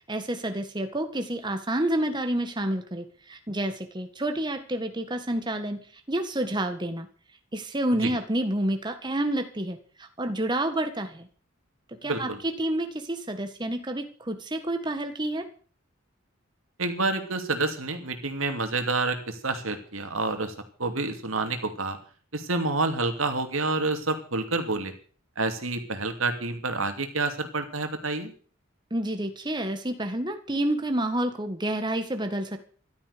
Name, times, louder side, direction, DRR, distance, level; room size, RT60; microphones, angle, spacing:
voice 1, 0.1-7.1 7.5-11.3 12.0-15.5 28.9-32.6, right 1 dB, 20° right, 7 dB, 1.7 m, -29 dB
voice 2, 12.0-12.4 16.8-20.5 20.8-22.0 22.3-24.9 25.4-28.3, right 3 dB, 80° right, 7 dB, 2.8 m, -28 dB
14.0 x 13.0 x 6.8 m, 0.42 s
head